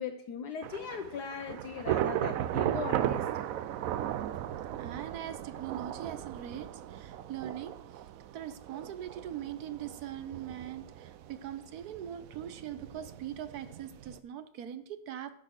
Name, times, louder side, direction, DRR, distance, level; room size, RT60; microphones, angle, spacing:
voice 1, 0.0-3.2, left 6 dB, 65° left, 6 dB, 1.2 m, -39 dB
Thunder / Rain, 0.6-14.2, right 11 dB, 80° right, 0.7 m, -36 dB
voice 2, 4.8-8.0 8.3-15.4, right 10 dB, 65° right, 12 dB, 1.2 m, -41 dB
10.5 x 6.1 x 6.5 m, 0.70 s
omnidirectional pair, 2.0 m